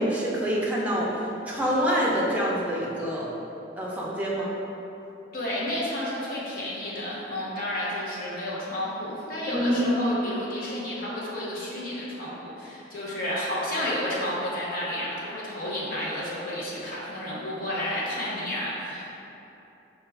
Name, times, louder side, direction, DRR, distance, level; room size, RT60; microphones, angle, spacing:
voice 1, 0.0-3.3 3.8-4.5 9.5-10.3, equal, 10° right, -5 dB, 0.5 m, -26 dB
voice 2, 5.3-19.1, left 1 dB, 50° left, -7 dB, 0.9 m, -31 dB
5.5 x 2.3 x 3.3 m, 3.0 s
head